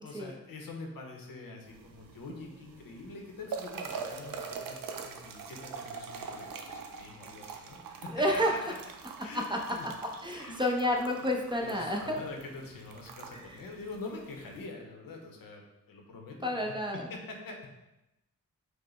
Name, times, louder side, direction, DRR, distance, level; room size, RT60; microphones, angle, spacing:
voice 1, 0.0-8.2 8.5-8.6 9.2-9.9 10.3-10.5 11.2-11.3 11.6-17.6, left 3 dB, 80° left, 2 dB, 0.7 m, -45 dB
sound 1, 1.7-14.6, right 5 dB, 80° right, 0.5 m, -44 dB
voice 2, 8.1-8.5 9.2-9.6 10.2-12.2 16.4-17.0, left 1 dB, 15° right, 0 dB, 0.5 m, -30 dB
4.8 x 2.1 x 3.1 m, 0.92 s
cardioid pair, 75°, 34 cm